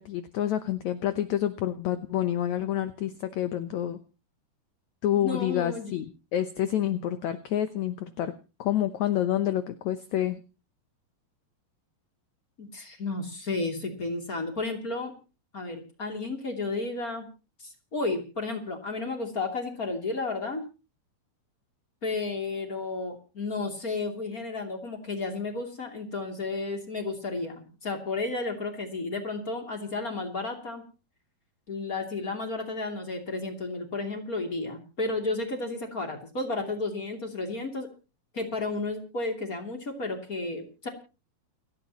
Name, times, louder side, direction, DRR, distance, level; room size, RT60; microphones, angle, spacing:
voice 1, 0.0-4.0 5.0-6.1 6.3-8.3 8.6-10.4, left 11 dB, 70° left, 9 dB, 1.8 m, -28 dB
voice 2, 5.2-5.9 12.6-15.1 15.5-17.3 17.6-20.6 22.0-30.8 31.7-37.9 38.3-40.9, left 3 dB, 25° left, 3 dB, 2.8 m, -32 dB
29.5 x 10.0 x 3.0 m, 0.33 s
omnidirectional pair, 4.4 m